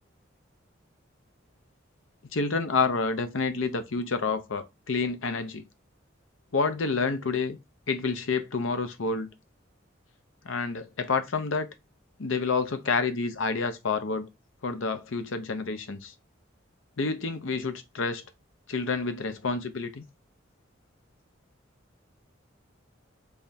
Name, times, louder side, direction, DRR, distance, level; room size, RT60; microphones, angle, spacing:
voice 1, 2.3-5.6 6.5-7.6 7.9-9.3 10.4-11.7 12.2-14.3 14.6-16.1 17.0-18.2 18.7-20.0, left 4 dB, 80° left, 0.7 m, -28 dB
3.5 x 3.3 x 4.1 m
head